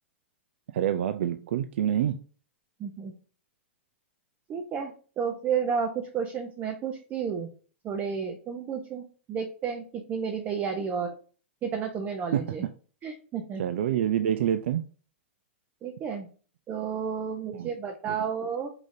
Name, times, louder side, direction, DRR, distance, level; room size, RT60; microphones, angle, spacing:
voice 1, 0.7-2.2 12.3-12.6 13.6-14.8 17.5-17.7 18.1-18.2, right 10 dB, 65° right, 9 dB, 0.4 m, -27 dB
voice 2, 2.8-3.1 4.5-7.5 7.8-11.1 11.6-12.6 13.0-13.6 15.8-16.3 16.7-18.7, right 6 dB, 30° right, 3 dB, 0.7 m, -32 dB
4.9 x 3.8 x 2.6 m, 0.39 s
hypercardioid pair, 105°, 7 cm